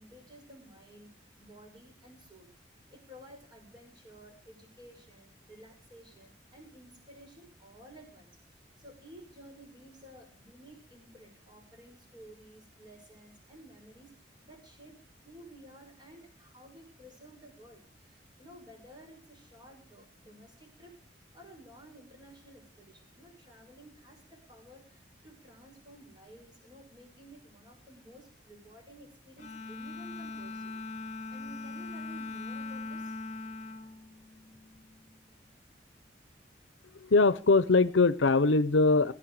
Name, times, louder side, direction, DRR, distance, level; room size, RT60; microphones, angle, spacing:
voice 1, 0.0-2.5 2.9-15.0 15.2-21.0 21.3-30.8 31.3-33.2, right 1 dB, 25° right, 3 dB, 5.9 m, -54 dB
Bowed string instrument, 29.4-34.9, left 3 dB, 35° left, 2.8 m, -41 dB
voice 2, 37.0-39.1, left 3 dB, 80° left, 17 dB, 0.7 m, -22 dB
17.5 x 15.0 x 4.8 m, 0.38 s
head